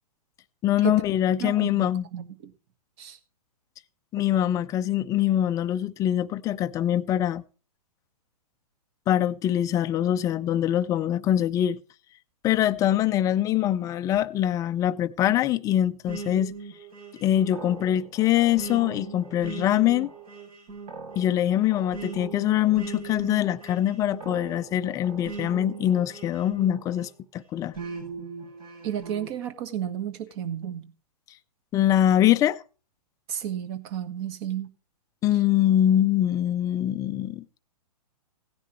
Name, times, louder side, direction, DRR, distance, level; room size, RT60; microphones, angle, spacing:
voice 1, 0.6-2.1 4.1-7.4 9.1-11.8 12.4-16.5 17.2-20.1 21.2-27.7 31.7-32.6 35.2-37.4, left 11 dB, 15° left, 0.4 m, -23 dB
voice 2, 1.4-2.5 3.0-3.2 28.8-30.9 33.3-34.7, right 10 dB, 40° right, 1.5 m, -32 dB
sound 1, 16.1-27.1 27.7-29.3, right 4 dB, 65° right, 7.8 m, -39 dB
16.5 x 10.0 x 3.1 m
hypercardioid pair, 130°, 20 cm